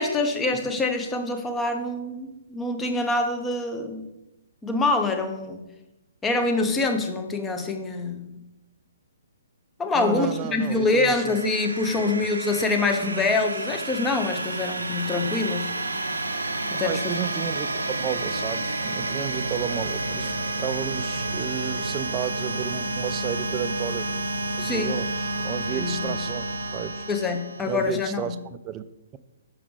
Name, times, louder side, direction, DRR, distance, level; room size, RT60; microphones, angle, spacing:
voice 1, 0.0-4.1 4.6-5.6 6.2-8.4 9.8-15.8 16.7-17.1 24.6-25.0 25.7-26.1 27.1-28.4, left 3 dB, 10° left, 5 dB, 0.7 m, -25 dB
voice 2, 9.9-11.4 12.0-12.3 16.8-20.3 20.6-24.1 24.6-27.0 27.6-28.4 28.6-28.8, right 10 dB, 25° right, 13 dB, 0.3 m, -32 dB
sound 1, 10.4-28.0, right 2 dB, 85° right, 0.5 m, -30 dB
6.3 x 4.9 x 3.2 m, 0.94 s
figure-of-eight pair, 130°, 0 cm